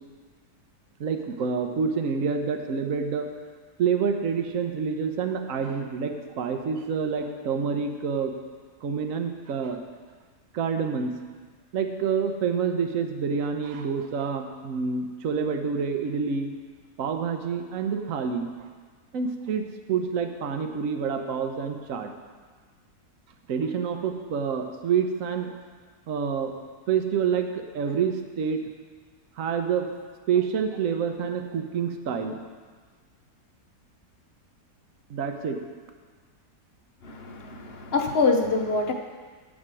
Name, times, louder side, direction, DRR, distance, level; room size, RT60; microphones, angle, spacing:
voice 1, 1.0-3.3 3.8-8.3 8.8-9.8 10.5-11.2 11.7-16.5 17.0-18.5 19.1-22.1 23.5-25.6 26.1-26.5 26.9-28.6 29.4-29.9 30.3-32.4 35.1-35.6, right 6 dB, 60° right, 6 dB, 1.1 m, -27 dB
voice 2, 37.0-38.9, left 3 dB, 50° left, 3 dB, 0.8 m, -25 dB
8.3 x 7.6 x 6.2 m, 1.5 s
omnidirectional pair, 1.7 m